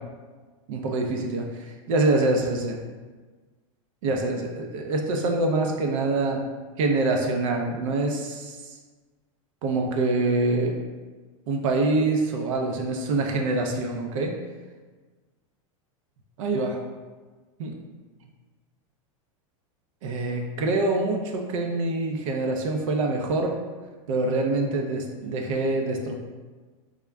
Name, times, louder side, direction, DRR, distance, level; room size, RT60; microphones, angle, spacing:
voice 1, 0.7-2.8 4.0-6.4 6.8-8.5 9.6-10.8 11.5-14.4 16.4-16.8 17.6-17.8 20.0-23.6 24.1-26.1, right 2 dB, 70° right, 2 dB, 0.5 m, -25 dB
3.6 x 2.1 x 3.4 m, 1.4 s
hypercardioid pair, 115°, 17 cm